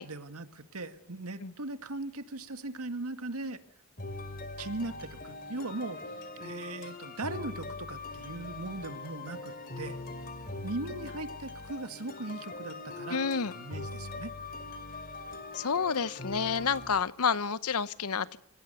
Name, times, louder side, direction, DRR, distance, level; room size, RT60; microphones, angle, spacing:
voice 1, 0.0-3.6 4.6-6.0 6.4-10.0 10.6-14.3, right 2 dB, 80° right, 1.9 m, -39 dB
sound 1, 4.0-17.0, left 3 dB, 40° left, 2.7 m, -42 dB
voice 2, 13.1-13.5 15.5-18.4, left 6 dB, 85° left, 0.9 m, -29 dB
27.0 x 18.0 x 7.0 m
head